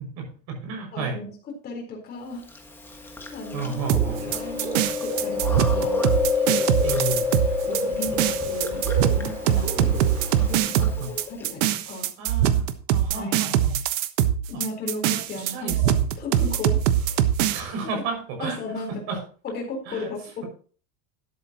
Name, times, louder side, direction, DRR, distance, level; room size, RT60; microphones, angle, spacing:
voice 1, 0.2-1.2 3.5-4.2 6.8-7.3 10.8-11.1 12.2-13.7 14.5-14.6 15.3-15.8 17.5-18.6 18.9-19.2 19.9-20.1, right 4 dB, 45° right, 3 dB, 6.3 m, -32 dB
voice 2, 0.9-1.3 1.6-2.5 3.0-3.8 4.2-6.0 7.7-9.7 10.3-12.1 13.1-13.5 14.5-17.3 17.8-18.0 18.4-19.2 19.4-20.4, left 3 dB, 25° left, 1 dB, 4.1 m, -35 dB
Chewing mastication, 2.5-11.4, left 5 dB, 5° left, 1.4 m, -29 dB
sound 1, 3.9-17.6, right 11 dB, 70° right, 1.2 m, -23 dB
Bird, 4.1-10.6, right 4 dB, 25° right, 2.6 m, -35 dB
12.5 x 11.0 x 3.0 m, 0.40 s
supercardioid pair, 175°, 39 cm